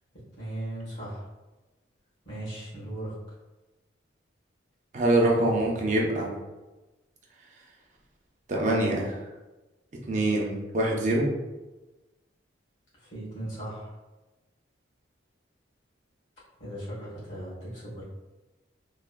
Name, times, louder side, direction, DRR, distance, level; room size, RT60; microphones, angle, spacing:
voice 1, 0.4-1.3 2.2-3.1 13.0-13.9 16.6-18.0, right 1 dB, 60° left, -7 dB, 1.3 m, -37 dB
voice 2, 4.9-6.3 8.5-9.2 10.1-11.3, right 1 dB, 35° right, -1 dB, 0.5 m, -24 dB
3.2 x 2.1 x 2.2 m, 1.1 s
head